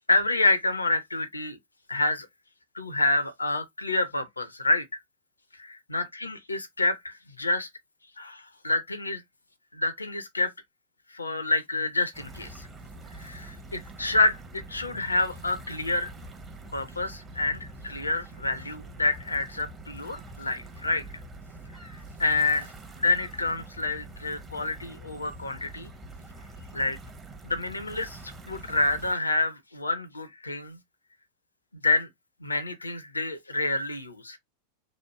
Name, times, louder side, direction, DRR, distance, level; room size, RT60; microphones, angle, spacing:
voice 1, 0.1-1.6 1.9-2.3 2.7-4.8 5.6-7.7 8.2-9.2 9.7-10.5 11.1-12.7 13.1-16.1 16.7-21.1 21.8-22.7 23.0-25.9 26.7-27.0 27.4-30.8 31.8-32.1 32.4-34.4, left 2 dB, 80° left, 0.5 m, -28 dB
sound 1, 12.1-29.1, right 2 dB, 20° right, 0.7 m, -45 dB
3.0 x 2.0 x 2.9 m
figure-of-eight pair, 90°, 0 cm